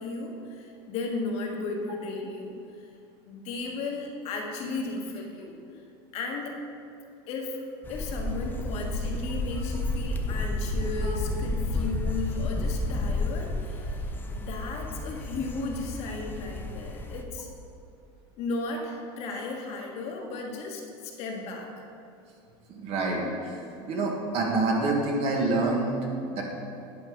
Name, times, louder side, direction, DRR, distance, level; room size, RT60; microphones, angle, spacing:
voice 1, 0.0-2.9 3.3-5.6 6.1-6.5 7.3-7.6 7.9-17.5 18.4-21.7, left 3 dB, 55° left, 0 dB, 1.5 m, -35 dB
sound 1, 7.8-17.2, left 2 dB, 15° left, 0.6 m, -31 dB
voice 2, 22.7-23.6 23.9-26.4, right 2 dB, 50° right, 0 dB, 1.7 m, -27 dB
10.0 x 5.3 x 5.1 m, 2.5 s
supercardioid pair, 130°, 13 cm